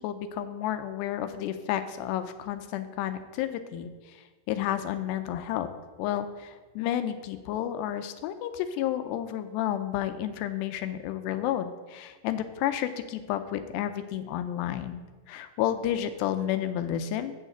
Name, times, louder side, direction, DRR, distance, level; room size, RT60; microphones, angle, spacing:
voice 1, 0.0-3.9 4.5-5.7 6.0-17.3, left 11 dB, 85° left, 9 dB, 2.7 m, -31 dB
7.2 x 6.4 x 7.8 m, 1.3 s
omnidirectional pair, 4.8 m